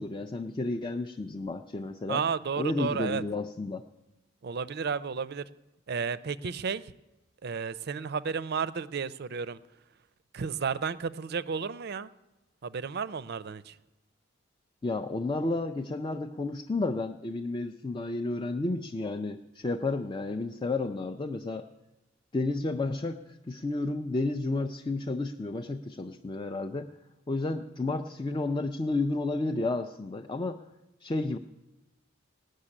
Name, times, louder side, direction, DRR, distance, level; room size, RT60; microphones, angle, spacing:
voice 1, 0.0-2.2 2.6-3.9 14.8-21.7 22.3-26.9 27.3-30.6 31.0-31.4, left 2 dB, 25° left, 5 dB, 0.4 m, -31 dB
voice 2, 2.1-3.2 4.4-5.4 5.9-6.9 7.4-9.6 10.3-12.1 12.6-13.8, right 6 dB, 50° right, 17 dB, 0.5 m, -32 dB
17.5 x 6.5 x 9.9 m, 1.0 s
head